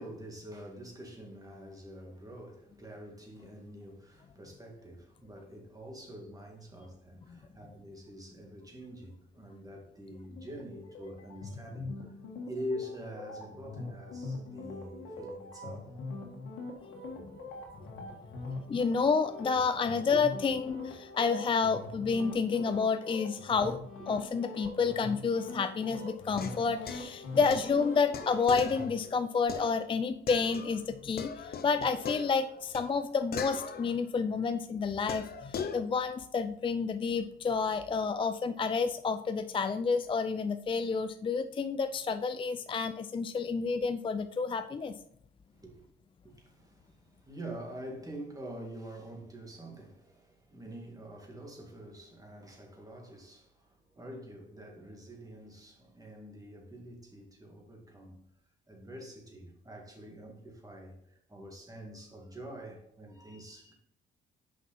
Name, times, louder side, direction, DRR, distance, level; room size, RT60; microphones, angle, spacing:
voice 1, 0.0-12.2 12.5-15.9 17.0-17.2 17.8-18.6 20.5-20.6 21.6-21.7 24.0-24.1 27.3-27.6 45.5-45.9 46.2-58.2 58.7-63.7, equal, 20° right, 2.1 m, -46 dB
sound 1, 10.3-28.9, left 2 dB, 90° left, 1.8 m, -43 dB
voice 2, 18.7-23.8 24.1-45.0, left 5 dB, 25° left, 0.4 m, -30 dB
sound 2, 26.3-30.9 31.2-34.4 35.1-35.8, left 6 dB, 50° left, 0.8 m, -41 dB
6.4 x 5.3 x 4.1 m
cardioid pair, 90°, 20 cm